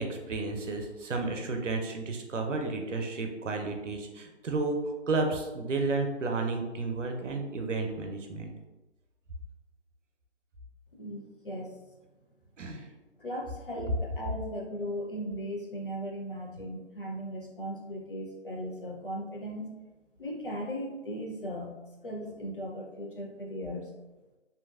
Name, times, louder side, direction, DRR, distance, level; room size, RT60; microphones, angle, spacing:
voice 1, 0.0-4.8 5.1-8.5 12.6-12.9, right 3 dB, 90° right, 3 dB, 0.6 m, -32 dB
voice 2, 10.9-11.8 13.2-19.7 20.2-23.9, equal, 50° left, -2 dB, 0.6 m, -37 dB
2.8 x 2.5 x 2.3 m, 1.1 s
figure-of-eight pair, 175°, 36 cm